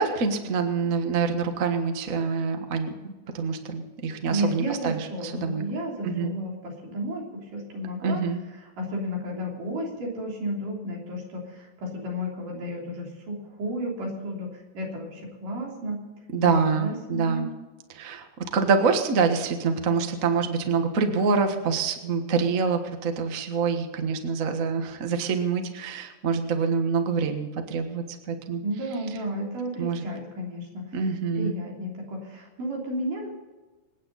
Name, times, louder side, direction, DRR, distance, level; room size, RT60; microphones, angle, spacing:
voice 1, 0.0-5.6 6.0-6.3 8.0-8.4 16.3-17.5 17.9-18.2 18.5-28.6 29.8-30.0 30.9-31.5, right 5 dB, 50° right, 5 dB, 1.0 m, -26 dB
voice 2, 4.3-8.2 8.8-14.5 14.7-16.0 16.4-17.5 28.6-31.0 31.3-33.3, equal, 75° right, -2 dB, 4.9 m, -32 dB
27.0 x 9.3 x 4.1 m, 1.2 s
omnidirectional pair, 3.8 m